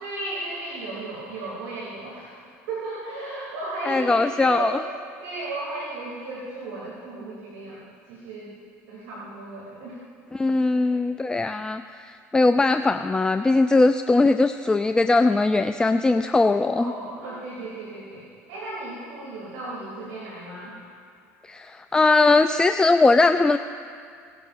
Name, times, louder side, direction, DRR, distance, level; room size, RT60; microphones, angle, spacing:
voice 1, 0.0-2.4 2.7-4.8 5.2-8.5 8.9-10.0 16.7-20.8, right 2 dB, 80° right, -7 dB, 3.1 m, -35 dB
voice 2, 3.9-4.8 10.3-16.9 21.4-23.6, left 3 dB, 10° left, 8 dB, 0.3 m, -20 dB
19.0 x 11.5 x 2.6 m, 2.2 s
supercardioid pair, 90°, 7 cm